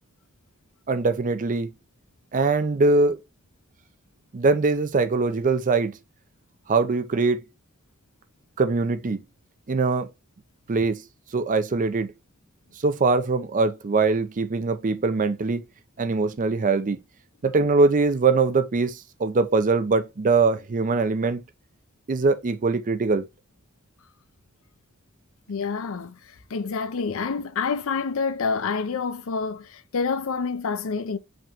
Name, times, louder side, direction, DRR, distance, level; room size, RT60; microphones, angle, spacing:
voice 1, 0.9-1.7 2.3-3.2 4.3-6.0 6.7-7.4 8.6-9.2 9.7-10.1 10.7-11.0 11.3-12.1 12.8-15.6 16.0-17.0 17.4-21.4 22.1-23.3, right 3 dB, 35° right, 0.5 m, -22 dB
voice 2, 25.5-26.2 26.5-31.2, left 5 dB, 65° left, 0.5 m, -27 dB
5.1 x 3.0 x 3.4 m
head